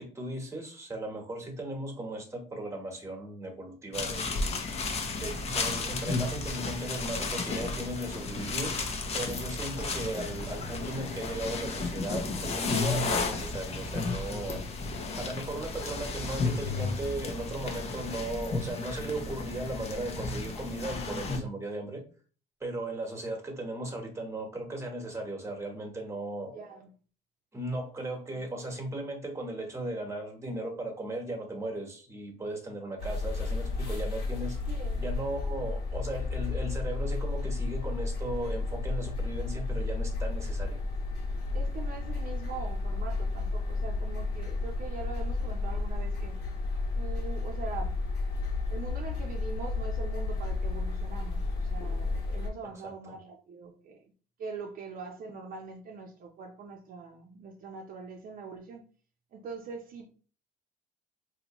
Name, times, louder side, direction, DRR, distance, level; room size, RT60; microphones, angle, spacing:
voice 1, 0.0-4.4 5.1-8.8 9.1-14.6 15.1-22.1 22.6-26.5 27.5-34.6 35.0-40.8 52.8-53.2, right 1 dB, 15° right, 1.2 m, -37 dB
sound 1, 3.9-21.4, left 3 dB, 40° left, 0.8 m, -33 dB
voice 2, 26.5-26.9 28.3-28.4 34.7-35.1 41.5-46.4 46.9-47.9 48.7-54.0 54.4-58.8 59.3-60.1, right 4 dB, 55° right, 0.7 m, -42 dB
sound 2, 33.0-52.5, left 3 dB, 65° left, 1.5 m, -32 dB
3.7 x 2.8 x 3.0 m
cardioid pair, 110°, 17 cm